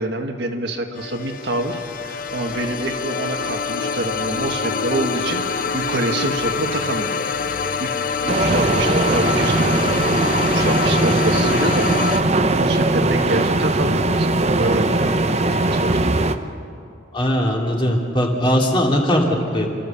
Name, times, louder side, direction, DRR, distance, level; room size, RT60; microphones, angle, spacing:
voice 1, 0.0-7.1 7.4-7.9 8.2-9.8 10.4-12.2 12.5-15.1 15.4-16.0 17.8-18.0 19.4-19.5, right 2 dB, 60° right, 3 dB, 1.7 m, -26 dB
sound 1, 1.0-12.2, left 5 dB, 45° left, 0.8 m, -25 dB
sound 2, 8.3-16.4, right 2 dB, 35° right, 0.8 m, -19 dB
voice 2, 17.1-19.7, equal, 25° left, 0 dB, 2.6 m, -19 dB
29.5 x 14.0 x 7.1 m, 2.5 s
head